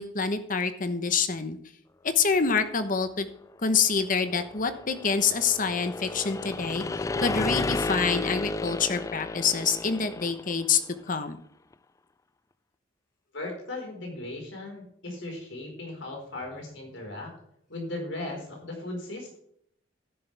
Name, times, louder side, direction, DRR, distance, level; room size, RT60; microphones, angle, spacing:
voice 1, 0.0-1.6 2.0-3.3 3.6-10.8 11.1-11.4, left 5 dB, 45° left, 9 dB, 1.1 m, -26 dB
sound 1, 3.8-10.8, left 3 dB, 15° left, 0.3 m, -33 dB
voice 2, 13.3-17.3 17.7-19.4, left 2 dB, 75° left, 1 dB, 4.8 m, -37 dB
12.5 x 10.5 x 3.5 m, 0.70 s
head